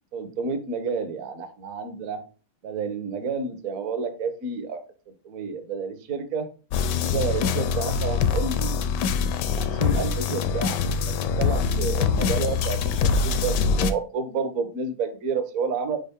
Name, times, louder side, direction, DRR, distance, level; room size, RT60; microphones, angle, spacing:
voice 1, 0.1-2.2 2.6-4.8 5.2-6.5 7.0-8.8 9.6-16.0, right 5 dB, 55° right, 8 dB, 1.0 m, -30 dB
sound 1, 6.7-13.9, left 6 dB, 75° left, 1.0 m, -24 dB
5.4 x 4.9 x 3.6 m, 0.35 s
omnidirectional pair, 2.3 m